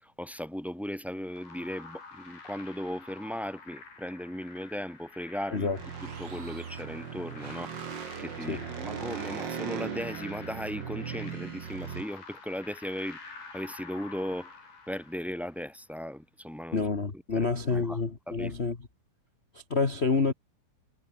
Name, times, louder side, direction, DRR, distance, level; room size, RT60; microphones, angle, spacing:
voice 1, 0.0-5.7 6.2-7.7 8.2-14.5 14.9-16.8 17.3-18.0 18.3-18.5, equal, ahead, 5.1 m, -37 dB
sound 1, 1.3-15.7, left 4 dB, 75° left, 9.0 m, -49 dB
sound 2, 5.7-12.0, right 7 dB, 45° right, 1.5 m, -38 dB
voice 2, 16.7-18.8 19.5-20.3, left 4 dB, 40° left, 0.9 m, -28 dB
omnidirectional pair, 4.3 m